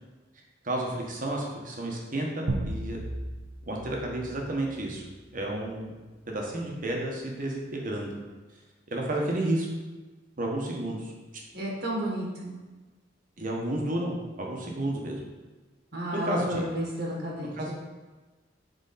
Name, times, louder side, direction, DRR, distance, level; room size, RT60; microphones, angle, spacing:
voice 1, 0.6-3.0 3.6-5.0 5.3-5.9 6.3-8.1 8.9-9.7 10.4-11.1 13.4-15.2 16.1-16.7 17.5-17.7, right 1 dB, 45° right, -1 dB, 1.2 m, -31 dB
sound 1, 2.5-5.3, right 1 dB, 75° right, 0.7 m, -35 dB
voice 2, 11.5-12.6 15.9-17.7, right 1 dB, 60° right, -3 dB, 1.5 m, -32 dB
6.7 x 4.3 x 4.1 m, 1.2 s
head